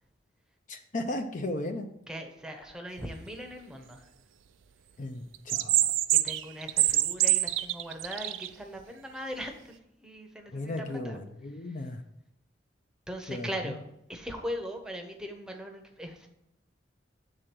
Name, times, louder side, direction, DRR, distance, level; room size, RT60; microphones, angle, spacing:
voice 1, 0.7-1.9 5.0-5.8 10.5-12.0 13.3-13.8, left 1 dB, 40° left, 6 dB, 0.5 m, -35 dB
voice 2, 2.1-4.1 6.1-11.2 11.7-11.8 13.1-13.8 14.1-16.3, equal, 5° right, 3 dB, 0.8 m, -40 dB
sound 1, 5.3-8.5, right 14 dB, 90° right, 0.4 m, -25 dB
8.1 x 3.8 x 6.0 m, 0.83 s
head